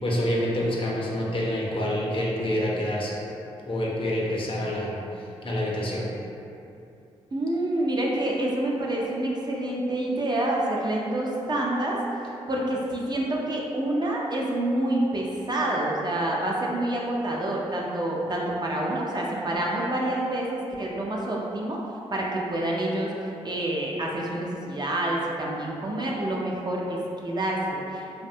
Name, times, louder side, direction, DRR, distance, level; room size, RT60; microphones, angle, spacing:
voice 1, 0.0-3.2 3.6-6.1, left 1 dB, 40° left, -4 dB, 0.6 m, -27 dB
voice 2, 7.3-12.0 12.5-21.8 22.1-28.3, right 1 dB, 35° right, -3 dB, 0.5 m, -27 dB
2.5 x 2.2 x 2.6 m, 2.8 s
supercardioid pair, 45°, 13 cm